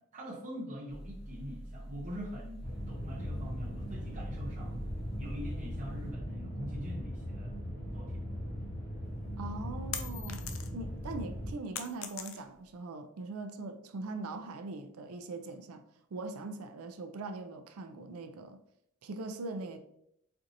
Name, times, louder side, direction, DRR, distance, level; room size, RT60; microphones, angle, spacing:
voice 1, 0.0-4.8 5.2-7.6 7.9-8.3, equal, 35° right, 0.7 m, -44 dB
sound 1, 0.9-6.1, right 1 dB, 20° left, 0.7 m, -45 dB
sound 2, 2.6-11.5, equal, 40° left, 1.0 m, -39 dB
sound 3, 9.1-10.9 11.3-12.7, left 8 dB, 65° left, 0.4 m, -41 dB
voice 2, 9.4-10.4 10.7-15.8 16.1-18.6 19.0-19.8, right 3 dB, 90° right, 0.4 m, -41 dB
4.4 x 2.5 x 2.6 m
head